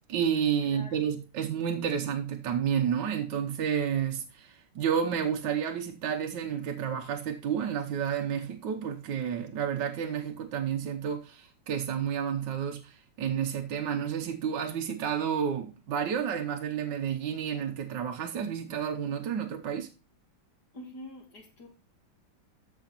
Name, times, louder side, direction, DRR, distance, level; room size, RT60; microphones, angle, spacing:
voice 1, 0.1-19.9, right 8 dB, 70° right, 1.5 m, -30 dB
voice 2, 0.6-1.0 20.7-21.7, left 1 dB, 60° left, 2.8 m, -46 dB
14.0 x 5.1 x 4.1 m
omnidirectional pair, 2.1 m